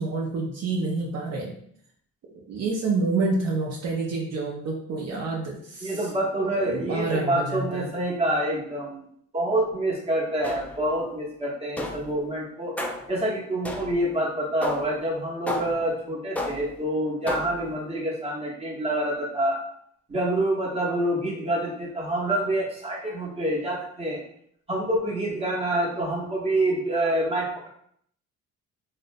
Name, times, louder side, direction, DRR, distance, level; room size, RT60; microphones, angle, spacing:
voice 1, 0.0-1.5 2.3-6.1 6.5-7.9, right 3 dB, 60° right, -1 dB, 0.5 m, -28 dB
voice 2, 5.8-9.1 9.3-12.7 13.1-19.6 20.1-24.2 24.7-27.7, right 1 dB, 20° right, -3 dB, 0.8 m, -27 dB
sound 1, 10.4-10.9 11.8-12.2 12.8-13.2 13.6-14.1 14.6-15.0 15.5-15.9 16.4-16.8 17.3-17.7, left 2 dB, 5° left, 0.3 m, -32 dB
2.6 x 2.0 x 2.5 m, 0.66 s
cardioid pair, 90°, 30 cm